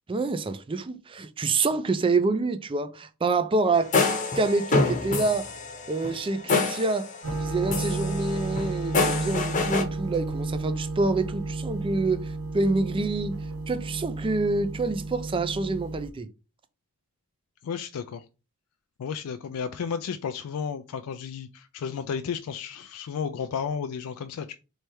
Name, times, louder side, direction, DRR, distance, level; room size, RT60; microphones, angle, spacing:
voice 1, 0.1-3.9 4.4-5.5 5.9-7.1 7.4-13.4 13.7-16.3, right 3 dB, 25° right, 0.4 m, -27 dB
sound 1, 3.8-7.4 7.7-9.8, left 3 dB, 35° left, 0.8 m, -27 dB
sound 2, 7.2-16.1, right 2 dB, 65° right, 0.8 m, -33 dB
voice 2, 17.6-18.2 19.0-24.5, left 6 dB, 80° left, 0.4 m, -33 dB
3.3 x 3.2 x 4.4 m
head